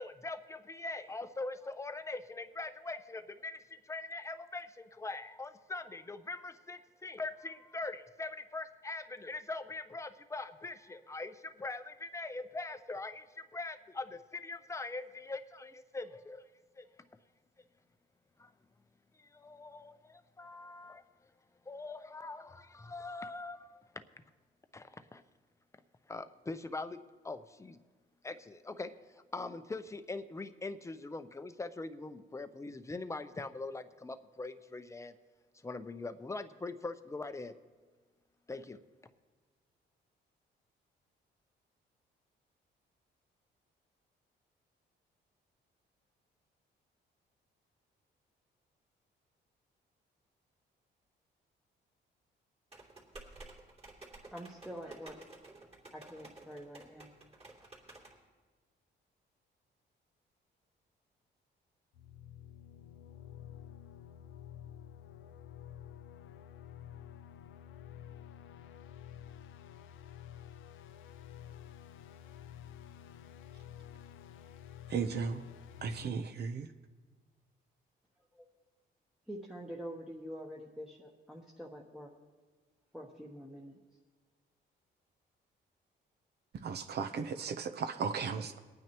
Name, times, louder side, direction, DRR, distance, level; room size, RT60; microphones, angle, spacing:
voice 1, 0.0-16.5 16.8-16.9 18.4-18.5 19.2-21.1 21.7-24.0 24.7-25.2 26.1-27.0 27.2-27.8 28.2-35.1 35.6-37.5 38.5-38.8, left 3 dB, 15° left, 10 dB, 0.6 m, -42 dB
sound 1, 52.7-58.2, right 2 dB, 30° right, 3.0 m, -53 dB
voice 2, 54.3-55.2 55.9-57.1 78.3-78.5 79.3-82.1 82.9-83.8, equal, ahead, -2 dB, 1.0 m, -46 dB
sound 2, 61.9-76.1, left 10 dB, 90° left, 0.6 m, -50 dB
voice 3, 74.9-75.4 75.8-76.7 86.5-88.6, right 6 dB, 55° right, 7 dB, 0.7 m, -36 dB
22.5 x 9.2 x 3.0 m, 1.4 s
cardioid pair, 90°, 20 cm